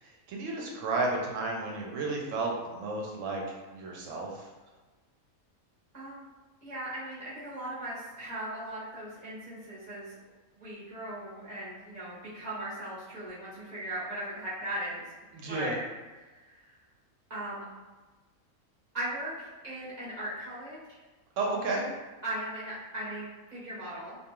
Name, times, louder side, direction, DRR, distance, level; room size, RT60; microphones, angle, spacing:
voice 1, 0.3-3.4 3.7-4.5 15.3-15.8 21.4-21.8, right 3 dB, 70° right, -1 dB, 0.9 m, -32 dB
voice 2, 5.9-6.3 6.6-10.2 10.6-15.1 15.5-15.8 16.2-16.7 17.3-17.6 18.9-20.8 22.2-24.2, right 1 dB, 40° right, -9 dB, 0.7 m, -38 dB
2.4 x 2.3 x 2.9 m, 1.2 s
omnidirectional pair, 1.4 m